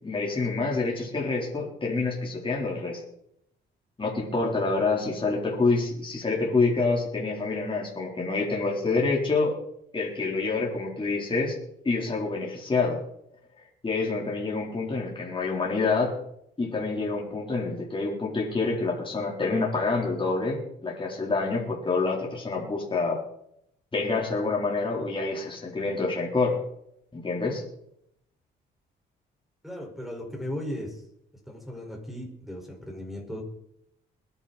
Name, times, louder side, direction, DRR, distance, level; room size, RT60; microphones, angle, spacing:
voice 1, 0.0-3.0 4.0-9.6 9.9-11.6 11.8-13.0 13.8-16.2 16.6-23.2 23.9-26.6 27.1-27.6, left 3 dB, 25° left, -3 dB, 4.0 m, -27 dB
voice 2, 29.6-31.0 31.5-33.4, left 1 dB, ahead, 1 dB, 5.3 m, -36 dB
21.0 x 10.5 x 4.3 m, 0.75 s
cardioid pair, 90°, 20 cm